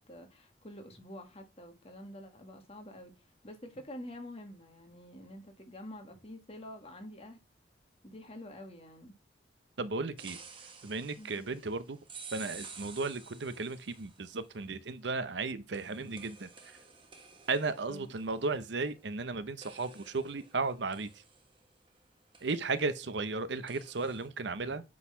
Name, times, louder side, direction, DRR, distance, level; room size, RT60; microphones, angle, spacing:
voice 1, 0.0-7.4 8.0-9.1 11.2-11.5 17.9-18.1, left 1 dB, 35° left, 1.7 m, -48 dB
voice 2, 9.8-10.4 10.8-12.0 12.3-16.5 17.5-21.1 22.4-24.8, right 3 dB, 70° right, 0.7 m, -35 dB
sound 1, 10.2-14.4 15.7-19.3 19.6-22.0 22.3-22.9 23.7-24.3, right 5 dB, 30° right, 1.4 m, -52 dB
8.5 x 4.1 x 5.5 m
head